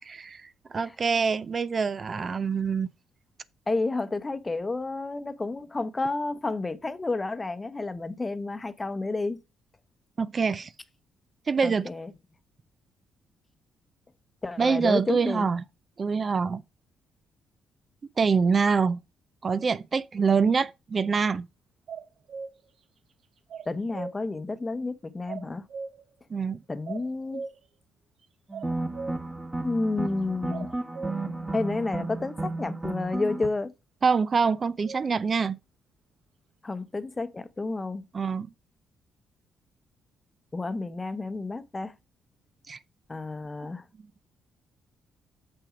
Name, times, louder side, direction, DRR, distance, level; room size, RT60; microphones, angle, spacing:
voice 1, 0.1-2.9 10.2-10.7 11.5-11.9 14.6-15.6 16.0-16.6 18.2-19.0 19.4-21.5 26.3-26.6 34.0-35.6 38.1-38.5 42.7-42.8, right 5 dB, 40° right, 0.4 m, -25 dB
voice 2, 3.7-9.4 11.6-12.1 14.4-15.5 23.7-25.7 26.7-27.4 29.6-30.7 31.5-33.7 36.6-38.1 40.5-41.9 43.1-43.8, left 3 dB, 20° left, 0.8 m, -30 dB
sound 1, 21.9-22.6 23.5-24.1 25.3-26.0 26.9-27.6 28.5-29.2 30.5-31.1 34.4-35.1, right 5 dB, 65° right, 1.2 m, -38 dB
sound 2, 28.5-33.5, right 2 dB, 20° right, 1.4 m, -33 dB
6.9 x 6.1 x 5.0 m
cardioid pair, 90°, 0 cm